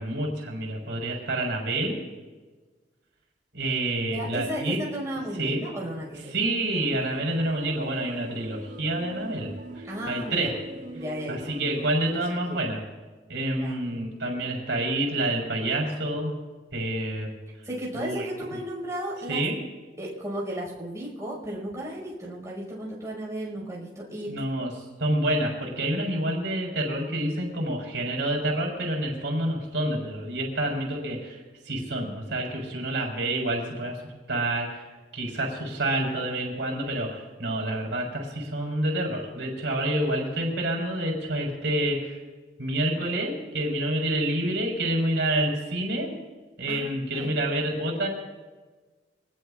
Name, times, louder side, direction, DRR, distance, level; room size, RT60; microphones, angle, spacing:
voice 1, 0.0-2.0 3.5-4.8 5.4-5.7 6.3-9.5 9.7-10.5 11.3-12.8 13.3-16.3 16.7-17.3 17.9-18.3 19.3-19.6 24.3-34.9 35.1-42.2 42.6-46.2 46.6-48.1, right 1 dB, 80° right, -1 dB, 4.3 m, -28 dB
voice 2, 4.1-6.3 9.8-10.6 10.9-11.5 12.0-12.6 13.5-14.0 17.6-19.4 20.0-24.3 46.7-47.4, right 1 dB, 15° right, -4 dB, 5.5 m, -35 dB
sound 1, 6.7-11.9, equal, 45° right, 1.4 m, -42 dB
24.5 x 19.5 x 2.5 m, 1.3 s
head